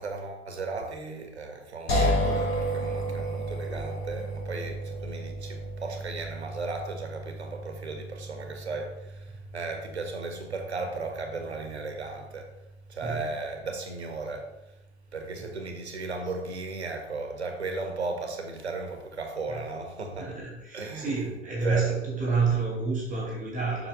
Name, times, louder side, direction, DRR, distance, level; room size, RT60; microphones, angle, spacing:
voice 1, 0.0-12.5 12.9-14.5 15.1-20.4 20.7-21.3 21.6-21.9 22.3-22.4, right 3 dB, 80° right, 4 dB, 1.5 m, -36 dB
sound 1, 1.9-15.0, equal, 70° left, 3.0 m, -34 dB
voice 2, 20.2-23.9, right 4 dB, 25° right, -4 dB, 2.7 m, -29 dB
7.3 x 6.4 x 3.5 m, 0.92 s
figure-of-eight pair, 90°, 32 cm